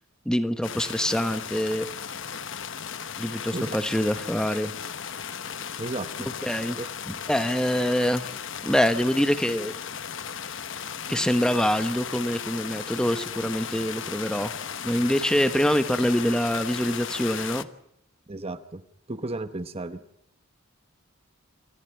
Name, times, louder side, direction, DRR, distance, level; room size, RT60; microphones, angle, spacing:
voice 1, 0.2-1.9 3.2-4.7 6.4-6.8 7.1-8.3 8.6-9.8 11.1-14.5 14.8-17.7, equal, 5° left, 10 dB, 1.0 m, -25 dB
sound 1, 0.6-17.6, left 7 dB, 55° left, 1.0 m, -36 dB
voice 2, 5.8-6.3 6.8-6.9 18.3-18.8 19.1-20.0, right 2 dB, 25° right, 10 dB, 0.9 m, -33 dB
27.5 x 15.0 x 9.0 m, 0.78 s
head